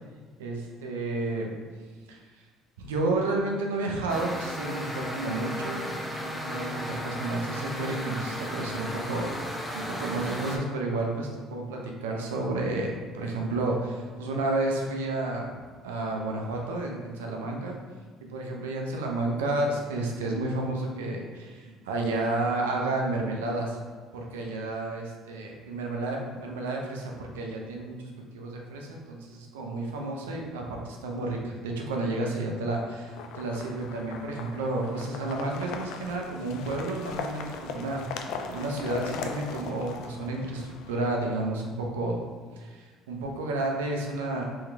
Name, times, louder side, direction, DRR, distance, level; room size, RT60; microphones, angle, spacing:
voice 1, 0.4-1.5 2.1-2.2 2.8-6.0 6.2-9.4 9.7-15.5 15.8-17.8 18.2-23.8 24.1-42.2 42.6-44.4, right 2 dB, 90° right, 0 dB, 0.5 m, -31 dB
sound 1, 4.1-10.6, equal, 5° left, 0.8 m, -35 dB
sound 2, 33.1-41.1, left 5 dB, 70° left, 0.3 m, -39 dB
3.5 x 3.1 x 3.3 m, 1.4 s
hypercardioid pair, 65°, 0 cm